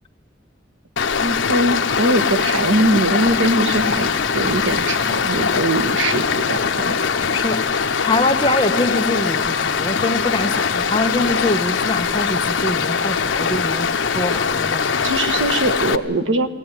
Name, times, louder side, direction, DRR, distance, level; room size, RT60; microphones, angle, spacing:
Stream, 1.0-16.0, left 6 dB, 85° left, 0.9 m, -21 dB
voice 1, 1.2-4.1 4.3-7.0 15.0-16.5, right 1 dB, 85° right, 9 dB, 1.5 m, -21 dB
sound 1, 2.9-9.8 10.1-10.5 10.9-11.0, equal, 10° right, 3.6 m, -47 dB
voice 2, 7.3-7.7 8.0-13.9 14.1-15.3, left 2 dB, 25° left, 5 dB, 1.3 m, -24 dB
22.0 x 17.0 x 9.9 m, 1.3 s
head